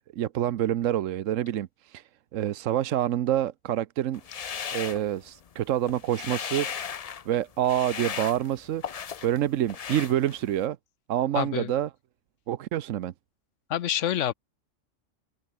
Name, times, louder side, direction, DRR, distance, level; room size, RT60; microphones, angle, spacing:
voice 1, 0.1-2.0 2.3-4.2 4.7-6.7 7.3-8.8 9.2-10.8 11.1-11.9 12.5-13.1, right 12 dB, 85° right, 1.1 m, -27 dB
sound 1, 4.1-5.5 5.8-7.3 7.6-9.4 9.7-10.6, left 7 dB, 45° left, 0.5 m, -36 dB
voice 2, 11.3-11.7 13.7-14.3, left 10 dB, 70° left, 1.1 m, -27 dB
open air
omnidirectional pair, 1.3 m